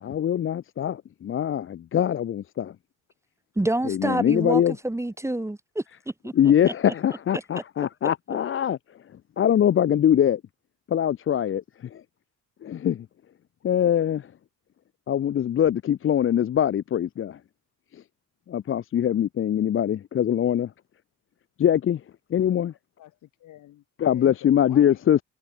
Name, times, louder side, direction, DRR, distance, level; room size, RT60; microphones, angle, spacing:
voice 1, 0.0-2.7 3.9-4.7 6.3-8.8 9.4-10.4 10.9-11.6 11.9-12.0 12.6-13.1 13.6-14.3 15.1-17.4 17.9-18.0 18.5-20.7 21.6-22.0 22.3-22.7 24.0-25.2, left 10 dB, 45° left, 0.6 m, -23 dB
voice 2, 3.5-5.8 6.2-6.7 7.3-7.4, right 1 dB, 10° right, 1.4 m, -27 dB
voice 3, 23.0-25.0, left 14 dB, 80° left, 4.5 m, -47 dB
cardioid pair, 90°, 30 cm